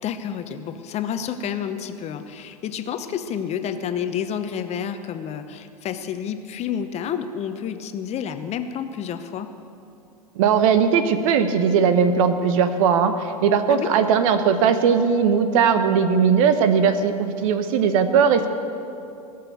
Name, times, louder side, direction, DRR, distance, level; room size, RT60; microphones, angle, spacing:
voice 1, 0.0-9.5 13.7-13.9, left 8 dB, 35° left, 9 dB, 0.9 m, -29 dB
voice 2, 10.4-18.5, right 6 dB, 60° right, 10 dB, 1.1 m, -19 dB
19.0 x 6.8 x 8.0 m, 2.7 s
hypercardioid pair, 90°, 19 cm